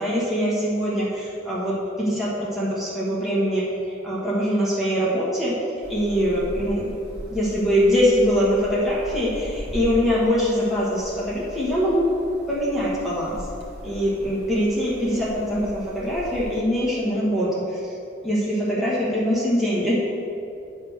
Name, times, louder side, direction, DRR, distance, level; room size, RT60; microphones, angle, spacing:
voice 1, 0.0-5.5 5.9-6.9 7.3-12.1 12.5-13.4 13.8-17.9 18.2-19.9, equal, ahead, -9 dB, 1.4 m, -23 dB
sound 1, 5.8-16.6, equal, 55° right, 1.2 m, -39 dB
9.6 x 3.3 x 6.4 m, 2.7 s
head